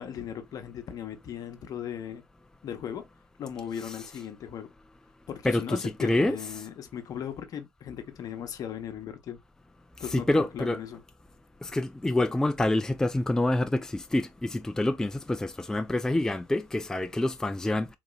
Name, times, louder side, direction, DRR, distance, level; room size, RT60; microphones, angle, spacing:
voice 1, 0.0-2.2 2.6-3.0 3.4-4.7 5.3-9.4 10.0-11.0, left 9 dB, 50° left, 0.8 m, -37 dB
voice 2, 5.4-6.4 10.1-10.8 11.6-17.9, left 1 dB, 5° left, 0.4 m, -27 dB
3.9 x 2.9 x 2.3 m
hypercardioid pair, 65°, 8 cm